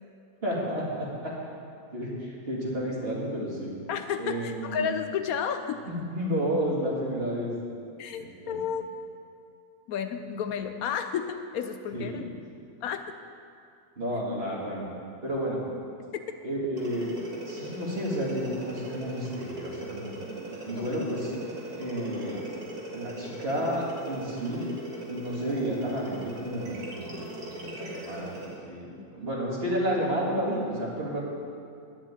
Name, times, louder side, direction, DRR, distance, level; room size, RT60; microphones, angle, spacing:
voice 1, 0.4-1.3 1.9-3.7 4.2-4.9 5.8-7.6 8.2-8.6 11.9-12.2 14.0-14.9 15.2-15.6 16.4-17.1 17.5-20.1 20.6-21.3 21.7-22.4 22.9-24.7 25.1-31.2, equal, 40° right, -4 dB, 2.2 m, -31 dB
voice 2, 3.9-5.8 8.0-8.8 9.9-12.3 12.8-13.1 20.8-20.9 29.0-29.1, left 7 dB, 75° left, 8 dB, 1.0 m, -32 dB
sound 1, 16.8-28.6, right 2 dB, 85° right, 2.3 m, -40 dB
10.5 x 5.8 x 8.5 m, 2.5 s
omnidirectional pair, 1.6 m